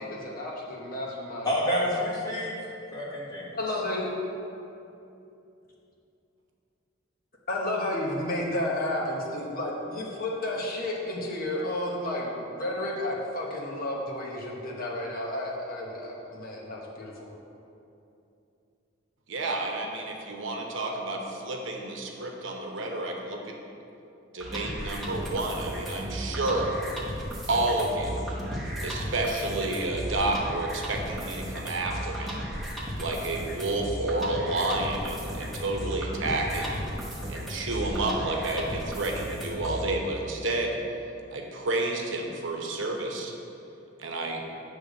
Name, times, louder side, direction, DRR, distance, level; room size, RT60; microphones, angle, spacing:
voice 1, 0.0-1.5 3.5-4.1 7.5-17.3, left 1 dB, 45° left, -3 dB, 1.1 m, -32 dB
voice 2, 1.4-2.6 2.9-3.8, left 1 dB, 20° left, -6 dB, 1.5 m, -29 dB
voice 3, 19.3-23.6 24.3-26.7 27.5-28.3 28.8-32.5 33.0-36.8 37.3-40.8 41.3-43.3 44.0-44.4, right 2 dB, 80° right, 1 dB, 0.9 m, -30 dB
sound 1, 24.4-39.9, equal, ahead, 1.1 m, -35 dB
8.3 x 3.3 x 6.4 m, 2.8 s
head